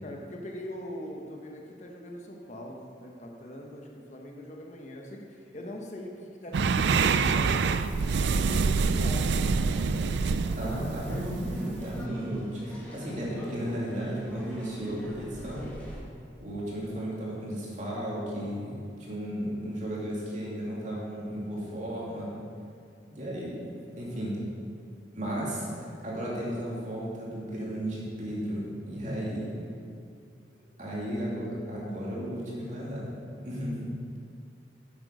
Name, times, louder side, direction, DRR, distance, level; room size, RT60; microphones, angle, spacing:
voice 1, 0.0-9.5, left 1 dB, 40° left, 1 dB, 1.0 m, -42 dB
sound 1, 6.5-12.0, right 4 dB, 70° right, 0.4 m, -26 dB
sound 2, 9.7-16.0, equal, 10° left, 2.0 m, -44 dB
voice 2, 10.6-15.7 16.4-22.3 23.1-23.7 24.0-24.4 25.1-29.5 30.8-33.1 33.4-33.9, equal, 40° right, -5 dB, 2.7 m, -34 dB
9.8 x 7.9 x 5.4 m, 2.3 s
head